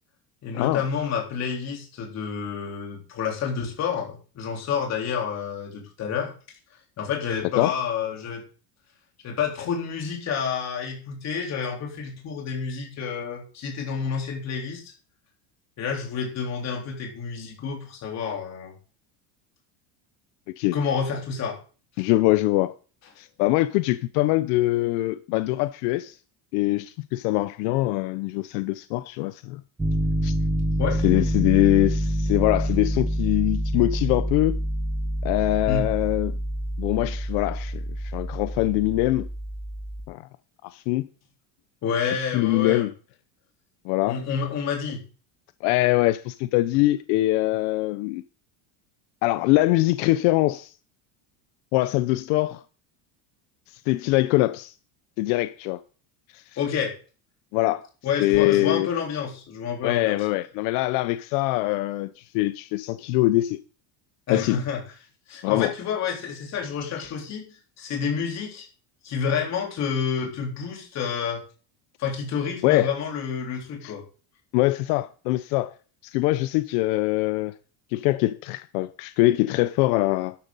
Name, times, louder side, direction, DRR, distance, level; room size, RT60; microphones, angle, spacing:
voice 1, 0.4-6.3 7.0-8.4 9.2-14.9 15.8-18.7 20.7-21.6 30.8-31.0 35.7-35.9 41.8-42.9 44.1-45.0 56.6-56.9 58.0-60.2 64.3-64.8 65.3-68.7 69.0-71.4 72.0-74.0, left 6 dB, 35° left, 3.9 m, -29 dB
voice 2, 22.0-22.7 23.2-26.2 26.5-29.6 30.2-30.3 31.0-34.6 35.2-36.4 36.8-39.3 40.1-40.2 40.6-41.1 42.3-42.9 43.8-44.2 45.6-48.2 49.2-50.7 51.7-52.6 53.9-54.7 55.2-55.8 56.3-56.4 57.5-57.9 58.2-58.9 59.8-63.6 64.3-64.6 65.4-65.7 67.0-67.1 72.6-72.9 73.8-73.9 74.5-75.7 76.0-77.5 77.9-80.4, left 18 dB, 80° left, 0.8 m, -23 dB
Piano, 29.8-40.1, equal, 5° right, 0.9 m, -27 dB
12.5 x 10.0 x 4.1 m
cardioid pair, 170°, 45 cm